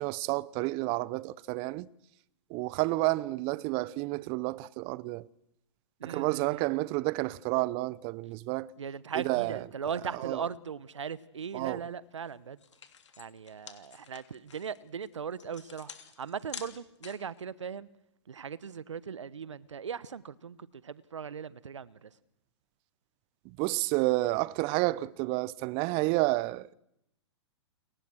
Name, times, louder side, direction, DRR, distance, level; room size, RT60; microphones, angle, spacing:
voice 1, 0.0-1.9 2.5-5.3 6.0-8.7 9.1-9.7 10.1-10.4 11.5-11.9 23.4-26.7, right 21 dB, 35° right, 0.8 m, -30 dB
voice 2, 6.0-6.7 8.8-12.6 13.2-15.9 16.2-17.9 18.3-20.6 20.8-22.1, right 7 dB, 80° right, 1.2 m, -38 dB
sound 1, 12.2-12.3 12.6-17.4, left 7 dB, 75° left, 3.0 m, -48 dB
29.0 x 22.5 x 6.4 m
hypercardioid pair, 115°, 15 cm